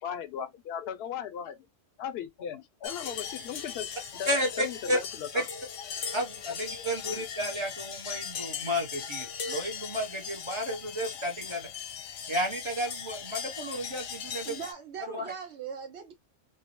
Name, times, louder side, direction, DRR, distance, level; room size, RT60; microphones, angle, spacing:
voice 1, 0.0-1.6 2.0-5.5 7.1-7.3, left 8 dB, 65° left, 0.8 m, -37 dB
sound 1, 2.8-14.7, left 7 dB, 85° left, 1.0 m, -39 dB
voice 2, 4.3-5.0 6.1-11.7 12.3-14.6 15.1-15.3, equal, 30° right, 0.7 m, -32 dB
voice 3, 14.4-16.1, right 7 dB, 70° right, 0.9 m, -40 dB
2.8 x 2.0 x 2.8 m
omnidirectional pair, 1.2 m